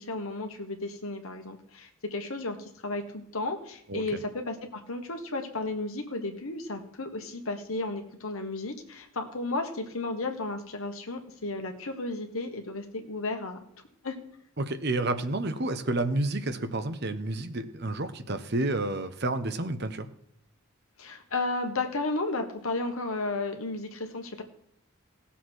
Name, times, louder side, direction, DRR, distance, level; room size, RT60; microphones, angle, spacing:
voice 1, 0.0-13.6 14.0-14.1 21.0-24.4, left 2 dB, 75° left, 5 dB, 1.6 m, -33 dB
voice 2, 14.6-20.1, right 2 dB, 50° right, 10 dB, 0.9 m, -30 dB
17.5 x 7.1 x 4.6 m, 0.75 s
head